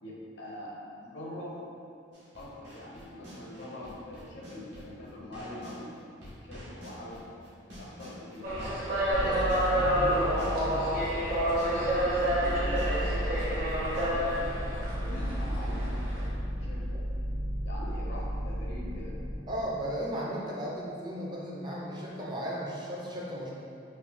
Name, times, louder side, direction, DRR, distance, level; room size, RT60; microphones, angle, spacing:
voice 1, 0.0-1.6 2.4-6.0 6.4-7.3 7.8-8.6 9.2-14.3 15.0-17.0 17.6-19.2, left 1 dB, 60° left, -4 dB, 0.7 m, -43 dB
sound 1, 2.1-5.8 6.2-14.4, equal, 75° right, 1.2 m, -47 dB
sound 2, 8.4-16.3, equal, 50° right, 0.8 m, -29 dB
sound 3, 9.1-19.3, equal, 80° left, 1.0 m, -34 dB
voice 2, 19.5-23.5, equal, 20° right, -4 dB, 0.4 m, -35 dB
3.2 x 2.7 x 3.4 m, 2.6 s
head